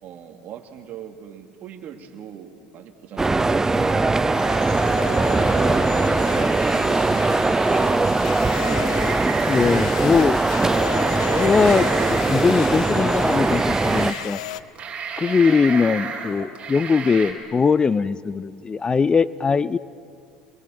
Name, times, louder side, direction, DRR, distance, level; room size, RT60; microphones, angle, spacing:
voice 1, 0.0-4.1 4.9-8.3, right 9 dB, 55° right, 6 dB, 2.5 m, -40 dB
sound 1, 3.1-4.8 5.7-6.6 7.8-7.9 8.4-10.1 10.8-12.6 13.1-14.3 14.6-17.3, right 6 dB, 35° right, 4.3 m, -34 dB
sound 2, 3.2-14.1, right 3 dB, 15° right, 0.7 m, -21 dB
sound 3, 4.3-14.6, left 13 dB, 85° left, 0.7 m, -34 dB
voice 2, 9.3-10.4 11.3-14.4 15.2-19.8, left 5 dB, 25° left, 19 dB, 0.6 m, -20 dB
25.0 x 21.5 x 7.9 m, 2.3 s
hypercardioid pair, 80°, 3 cm